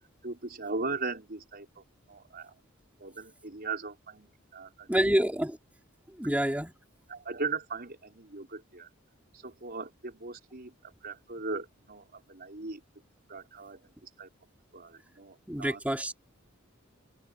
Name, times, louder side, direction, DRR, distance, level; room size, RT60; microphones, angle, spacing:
voice 1, 0.2-2.5 3.0-5.1 7.1-8.9 9.3-12.8 13.3-14.3 14.7-15.8, right 3 dB, 50° right, 4.7 m, -39 dB
voice 2, 4.9-5.6 6.2-6.7 15.5-16.1, equal, 5° right, 2.9 m, -27 dB
open air
head